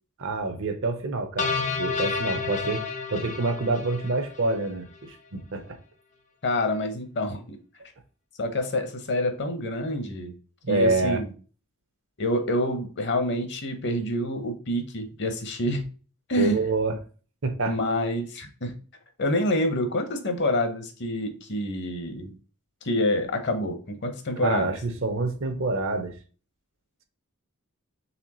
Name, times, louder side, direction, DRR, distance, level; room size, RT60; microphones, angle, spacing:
voice 1, 0.2-2.8 3.1-5.8 10.7-11.2 16.4-17.0 17.4-17.8 24.4-26.1, right 3 dB, 60° right, 0.7 m, -27 dB
sound 1, 1.4-4.7, left 5 dB, 35° left, 0.4 m, -30 dB
voice 2, 6.4-7.6 8.4-10.3 10.7-11.3 12.2-15.8 16.3-16.6 17.7-18.7 19.2-22.3 22.8-24.7, left 1 dB, 55° left, 0.8 m, -27 dB
4.2 x 3.4 x 2.9 m
head